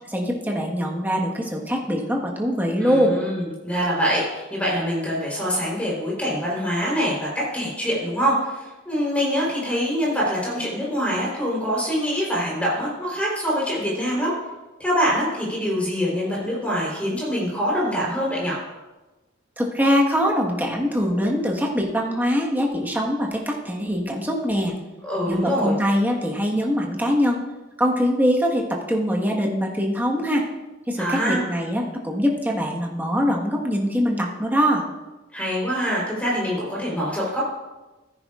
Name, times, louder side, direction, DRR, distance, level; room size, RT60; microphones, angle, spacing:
voice 1, 0.1-3.2 19.6-24.7 25.3-27.4 27.8-30.4 30.9-34.9, equal, 10° right, -1 dB, 1.4 m, -23 dB
voice 2, 2.8-14.3 14.8-18.6 25.0-25.8 31.0-31.4 35.3-37.4, equal, 5° left, -5 dB, 3.8 m, -24 dB
15.0 x 9.7 x 2.5 m, 1.1 s
head